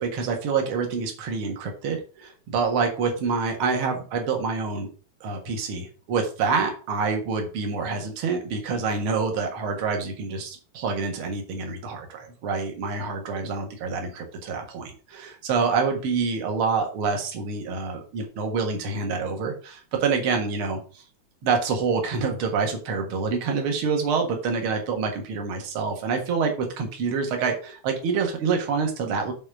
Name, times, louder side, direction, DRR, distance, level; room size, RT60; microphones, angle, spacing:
voice 1, 0.0-4.9 5.2-20.8 21.4-29.3, right 5 dB, 50° right, 3 dB, 2.2 m, -27 dB
7.3 x 4.3 x 6.1 m, 0.37 s
omnidirectional pair, 3.4 m